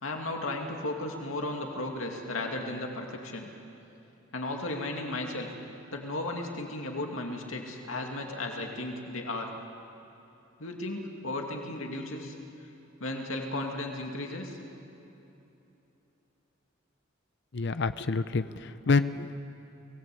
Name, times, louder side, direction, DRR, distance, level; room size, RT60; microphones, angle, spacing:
voice 1, 0.0-3.5 4.3-5.5 5.9-9.5 10.6-12.3 13.0-14.6, left 2 dB, 75° left, 2 dB, 2.6 m, -35 dB
voice 2, 17.5-19.4, left 4 dB, 55° left, 12 dB, 0.7 m, -28 dB
26.0 x 18.5 x 8.6 m, 3.0 s
head